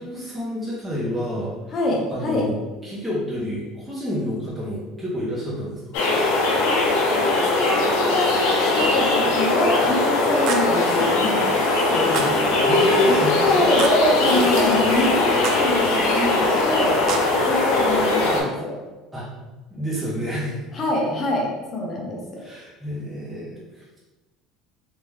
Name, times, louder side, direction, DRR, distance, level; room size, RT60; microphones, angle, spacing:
voice 1, 0.0-1.5 2.1-2.6 2.8-5.8 12.6-13.7 19.1-19.3 19.7-20.6 22.4-23.5 23.7-23.8, equal, 10° right, -8 dB, 1.0 m, -29 dB
voice 2, 1.7-2.5 6.7-6.8 7.5-12.7 13.1-17.0 17.5-18.8 20.7-22.4, left 1 dB, 25° left, -2 dB, 0.8 m, -25 dB
sound 1, 5.9-18.4, left 2 dB, 80° left, 0.9 m, -20 dB
sound 2, 10.5-10.9 12.1-12.5 13.8-14.2 15.4-15.8 17.1-17.5, right 6 dB, 55° right, 0.4 m, -30 dB
3.5 x 2.9 x 3.3 m, 1.1 s
cardioid pair, 155°, 0 cm